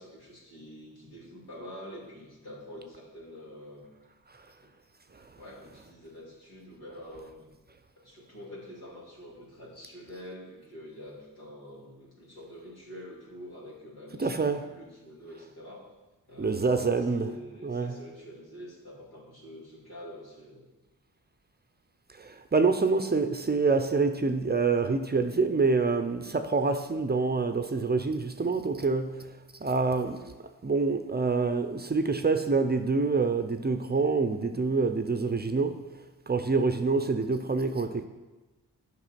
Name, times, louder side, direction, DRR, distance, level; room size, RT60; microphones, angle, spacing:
voice 1, 0.0-3.9 4.6-4.7 5.3-7.5 8.0-15.9 16.3-20.7, equal, 75° left, -5 dB, 2.4 m, -46 dB
voice 2, 14.2-14.6 16.4-17.3 17.6-18.0 22.2-29.3 29.6-30.3 30.6-35.8 36.3-38.1, right 4 dB, 25° right, 8 dB, 0.6 m, -26 dB
7.8 x 5.4 x 4.3 m, 1.2 s
cardioid pair, 50°, 38 cm